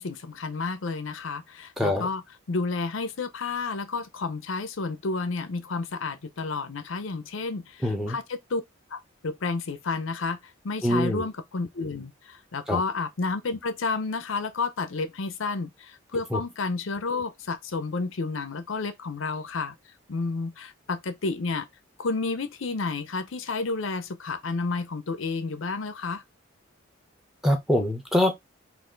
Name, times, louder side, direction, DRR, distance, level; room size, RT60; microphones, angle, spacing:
voice 1, 0.0-2.2 2.5-8.6 8.9-19.7 20.1-21.7 22.0-26.2, left 3 dB, 70° left, 0.6 m, -31 dB
voice 2, 1.8-2.1 7.8-8.2 10.8-11.2 12.7-12.8 16.3-16.4 27.4-28.3, left 1 dB, ahead, 1.0 m, -24 dB
4.4 x 2.6 x 3.8 m
head